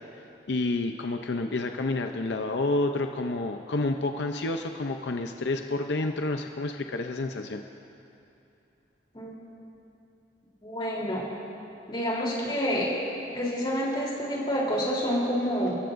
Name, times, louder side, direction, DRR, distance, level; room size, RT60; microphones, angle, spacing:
voice 1, 0.5-7.6, left 2 dB, 80° left, 5 dB, 0.6 m, -29 dB
voice 2, 10.6-11.3 11.9-13.0 13.3-15.8, equal, 25° left, -4 dB, 3.4 m, -28 dB
29.5 x 15.0 x 2.6 m, 2.8 s
head